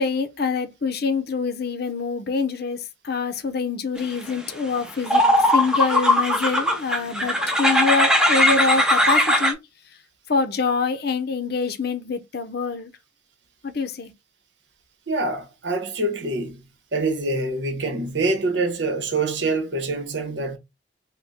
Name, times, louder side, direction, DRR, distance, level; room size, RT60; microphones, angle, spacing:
voice 1, 0.0-5.3 5.5-9.6 10.3-12.9 13.6-14.1, left 4 dB, 55° left, 0.6 m, -25 dB
sound 1, 4.5-4.6 5.1-9.5, left 1 dB, 5° right, 0.7 m, -19 dB
voice 2, 15.1-16.6 16.9-20.6, right 2 dB, 65° right, 0.9 m, -25 dB
3.5 x 2.1 x 4.0 m
head